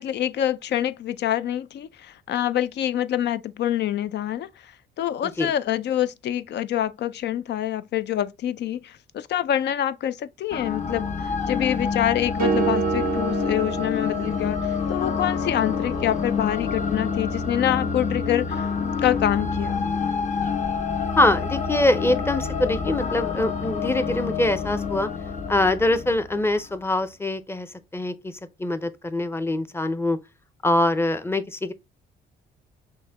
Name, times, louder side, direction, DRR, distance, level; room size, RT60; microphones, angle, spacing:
voice 1, 0.0-18.7 19.0-19.9, left 11 dB, 60° left, 0.4 m, -26 dB
sound 1, 10.5-26.7, left 5 dB, 40° left, 0.8 m, -27 dB
sound 2, 12.4-14.7, right 10 dB, 45° right, 0.4 m, -28 dB
voice 2, 21.2-25.1 25.5-27.7 27.9-28.3 28.6-30.2 30.6-31.7, left 1 dB, 10° left, 0.6 m, -23 dB
6.1 x 2.2 x 3.4 m
cardioid pair, 90°, 20 cm